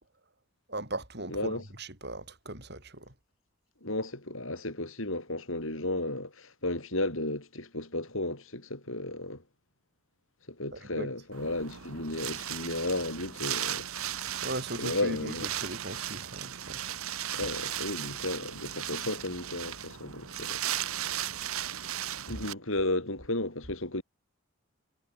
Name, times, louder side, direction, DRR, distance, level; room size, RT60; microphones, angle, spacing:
voice 1, 0.7-3.1 10.7-11.1 14.4-17.0 17.4-17.5, right 1 dB, 50° right, 7.7 m, -38 dB
voice 2, 1.3-1.6 3.8-9.4 10.5-13.9 14.8-15.5 17.3-20.6 22.3-24.0, left 2 dB, 65° left, 6.4 m, -33 dB
Wind, 11.3-22.5, right 11 dB, 80° right, 1.6 m, -36 dB
head